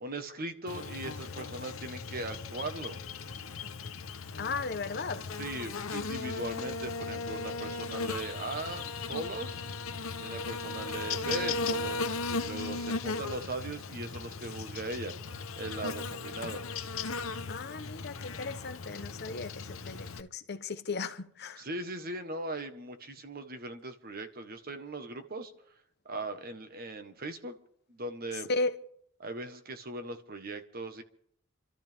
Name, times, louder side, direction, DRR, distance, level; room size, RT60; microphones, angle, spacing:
voice 1, 0.0-3.0 5.4-9.6 10.2-16.6 21.6-25.5 26.0-27.6 27.9-28.5 29.2-31.0, right 2 dB, 45° right, 1.4 m, -39 dB
Buzz, 0.7-20.2, left 4 dB, 80° left, 0.9 m, -37 dB
voice 2, 4.4-5.2 17.5-21.7 28.5-28.7, left 3 dB, 50° left, 1.0 m, -35 dB
28.5 x 13.0 x 3.6 m
head